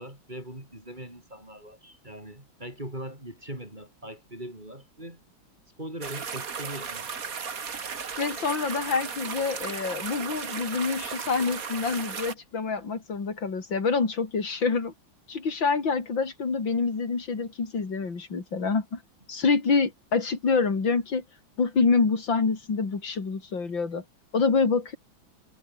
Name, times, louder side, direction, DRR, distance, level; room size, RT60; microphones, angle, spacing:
voice 1, 0.0-5.2 5.8-7.1, right 1 dB, 20° right, 6.6 m, -40 dB
sound 1, 6.0-12.3, right 6 dB, 45° right, 2.1 m, -35 dB
voice 2, 8.2-14.9 15.3-19.0 19.3-21.2 21.6-24.0 24.3-25.0, left 4 dB, 70° left, 4.3 m, -26 dB
omnidirectional pair, 2.2 m